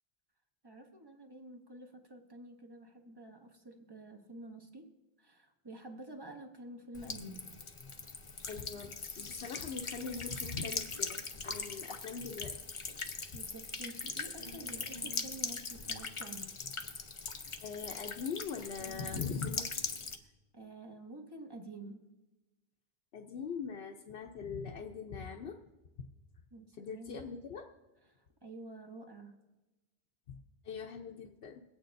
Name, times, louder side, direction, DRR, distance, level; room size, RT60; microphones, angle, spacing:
voice 1, 0.6-4.9 5.2-7.5 13.3-16.5 20.5-22.0 26.5-27.2 28.4-29.3, right 1 dB, 25° right, 3 dB, 0.9 m, -49 dB
Buzz / Water tap faucet / Trickle dribble, 6.9-20.2, left 4 dB, 35° left, 0.6 m, -41 dB
voice 2, 8.5-12.8 17.6-20.0 23.1-25.6 26.8-27.7 30.3-30.4 30.6-31.6, left 5 dB, 75° left, 1 dB, 0.9 m, -42 dB
22.0 x 8.8 x 2.6 m, 1.1 s
omnidirectional pair, 1.1 m